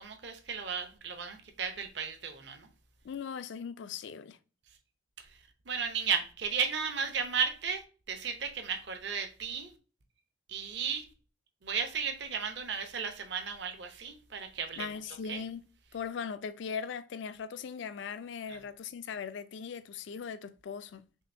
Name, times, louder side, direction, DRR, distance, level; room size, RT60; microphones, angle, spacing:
voice 1, 0.0-2.7 5.2-5.3 5.7-9.7 10.5-11.0 11.6-14.9 15.3-15.4 18.5-18.6, right 6 dB, 60° right, 0.6 m, -34 dB
voice 2, 3.0-4.4 14.8-15.6 15.9-21.1, left 6 dB, 65° left, 0.3 m, -39 dB
6.2 x 2.5 x 2.6 m
head